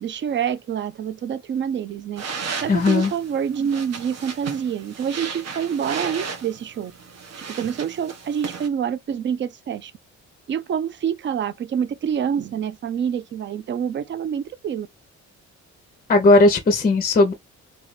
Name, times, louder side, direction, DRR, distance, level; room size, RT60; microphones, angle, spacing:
voice 1, 0.0-2.2 2.6-6.9 7.4-9.9 10.5-14.9, right 8 dB, 40° right, 0.4 m, -27 dB
sound 1, 2.2-8.7, right 5 dB, 60° right, 1.0 m, -35 dB
voice 2, 2.7-3.1 16.1-17.3, left 2 dB, 30° left, 0.7 m, -16 dB
3.4 x 2.5 x 3.2 m
cardioid pair, 90°, 30 cm